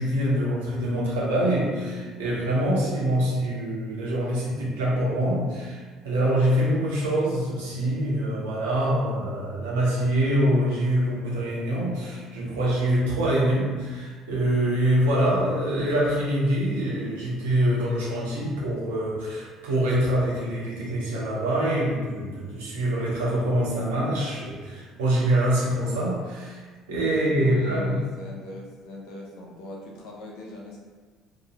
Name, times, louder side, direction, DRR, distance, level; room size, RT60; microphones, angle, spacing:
voice 1, 0.0-26.6 26.9-28.0, right 1 dB, 80° right, -6 dB, 0.8 m, -25 dB
voice 2, 27.1-30.8, left 1 dB, 65° left, -2 dB, 0.6 m, -39 dB
2.7 x 2.0 x 3.3 m, 1.4 s
hypercardioid pair, 60°, 0 cm